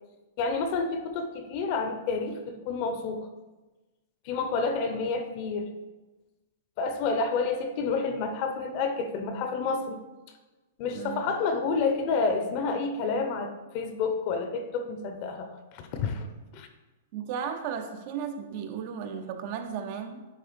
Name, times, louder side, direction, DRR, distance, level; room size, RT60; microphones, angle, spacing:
voice 1, 0.4-3.3 4.2-5.7 6.8-10.0 10.8-16.3 16.5-16.7, left 4 dB, 40° left, 6 dB, 0.9 m, -29 dB
voice 2, 10.9-11.4 17.1-20.3, right 7 dB, 45° right, 7 dB, 0.7 m, -35 dB
9.7 x 3.5 x 5.2 m, 1.2 s
hypercardioid pair, 155°, 0 cm